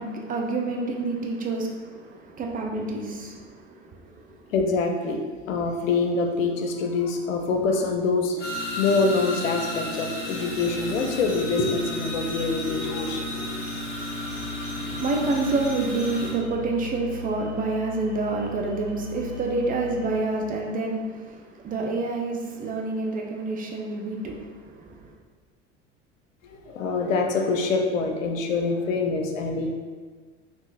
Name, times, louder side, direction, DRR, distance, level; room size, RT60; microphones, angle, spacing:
voice 1, 0.0-4.4 14.8-25.1, right 3 dB, 25° right, 0 dB, 0.4 m, -28 dB
voice 2, 4.5-5.2 5.5-13.5 26.4-29.7, left 3 dB, 80° left, 3 dB, 0.6 m, -25 dB
sound 1, 8.4-16.3, left 1 dB, 25° left, 1.1 m, -33 dB
sound 2, 10.5-20.2, left 2 dB, 45° right, 1.4 m, -40 dB
3.6 x 3.0 x 2.5 m, 1.4 s
hypercardioid pair, 80°, 38 cm